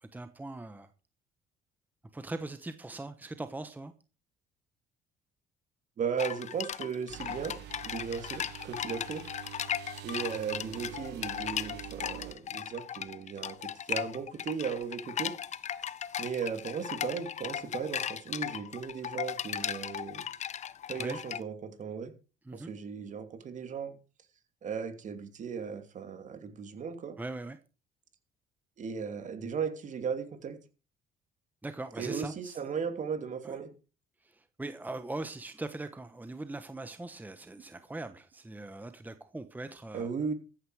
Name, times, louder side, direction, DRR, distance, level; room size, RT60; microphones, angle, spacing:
voice 1, 0.0-0.9 2.1-3.9 21.0-21.2 22.4-22.7 27.2-27.6 31.6-32.7 33.4-33.6 34.2-40.1, right 2 dB, 10° right, 1.2 m, -41 dB
voice 2, 6.0-7.6 7.8-9.2 10.0-15.3 16.2-20.2 20.9-22.1 22.5-24.0 24.6-27.2 28.8-30.6 32.0-33.7 39.9-40.3, right 6 dB, 45° right, 2.7 m, -36 dB
sound 1, 6.2-21.4, left 9 dB, 45° left, 0.8 m, -37 dB
sound 2, 7.1-12.3, right 15 dB, 85° right, 1.2 m, -46 dB
14.5 x 10.0 x 4.8 m
cardioid pair, 110°, 17 cm